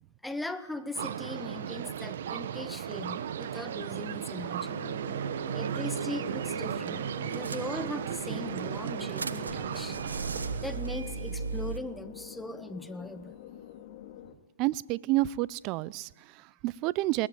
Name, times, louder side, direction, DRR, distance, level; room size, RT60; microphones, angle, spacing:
voice 1, 0.2-4.8 5.5-10.0 10.6-13.4, left 1 dB, 5° left, 11 dB, 1.4 m, -39 dB
sound 1, 0.9-11.0, right 9 dB, 65° right, 1.3 m, -35 dB
sound 2, 4.6-14.3, left 11 dB, 50° left, 2.8 m, -46 dB
sound 3, 6.4-6.6 6.9-7.0 7.3-8.1 8.6-11.8, right 4 dB, 90° right, 1.7 m, -37 dB
voice 2, 14.6-17.3, right 18 dB, 35° right, 23 dB, 0.7 m, -30 dB
21.5 x 20.0 x 7.7 m, 1.1 s
hypercardioid pair, 125°, 0 cm